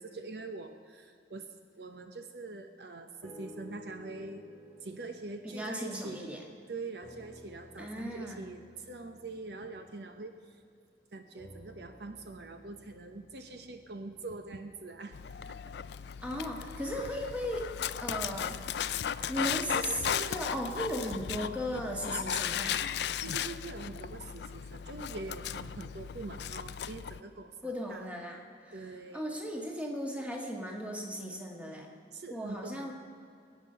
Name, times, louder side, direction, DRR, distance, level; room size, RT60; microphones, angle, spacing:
voice 1, 0.0-1.5 1.7-4.4 4.8-10.6 11.1-15.2 15.4-15.6 23.2-28.3 28.7-29.2 32.1-32.9, right 3 dB, 65° right, 6 dB, 0.9 m, -44 dB
sound 1, 3.2-6.6 7.0-10.7 11.3-15.6 16.2-16.3, equal, 10° left, 2.1 m, -54 dB
voice 2, 5.4-6.4 7.8-8.4 16.2-17.7 18.0-19.0 19.3-22.8 27.6-31.9 32.3-32.9, equal, 10° right, 0 dB, 1.7 m, -37 dB
Dog, 15.1-27.2, left 8 dB, 65° left, 0.4 m, -36 dB
22.0 x 9.4 x 5.7 m, 2.5 s
head